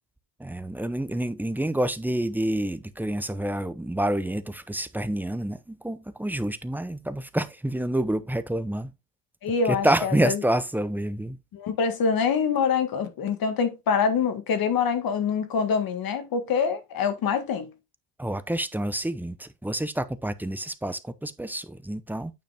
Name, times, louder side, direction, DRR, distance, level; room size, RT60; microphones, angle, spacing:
voice 1, 0.4-8.9 9.7-11.4 18.2-22.3, right 1 dB, 5° right, 0.7 m, -28 dB
voice 2, 9.4-10.4 11.5-17.7, left 6 dB, 55° left, 1.9 m, -25 dB
9.4 x 5.0 x 3.5 m
cardioid pair, 115°, 41 cm